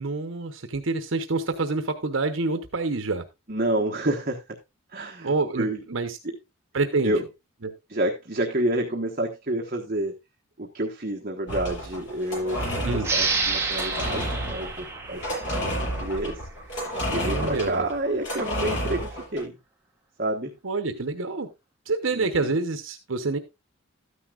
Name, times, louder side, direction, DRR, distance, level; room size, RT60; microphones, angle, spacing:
voice 1, 0.0-3.2 5.2-6.2 6.7-7.2 7.6-7.7 12.8-13.1 17.1-17.8 20.6-21.5 21.9-23.4, right 3 dB, 70° right, 1.0 m, -27 dB
voice 2, 3.5-4.4 4.9-5.8 6.2-6.4 7.0-7.2 7.9-10.1 10.6-16.4 16.7-19.5 20.2-20.5 22.1-22.5, right 1 dB, 45° right, 1.2 m, -29 dB
sound 1, 11.5-19.4, equal, 60° left, 7.2 m, -31 dB
sound 2, 13.0-16.3, right 4 dB, 15° right, 1.5 m, -29 dB
13.0 x 9.8 x 2.4 m
head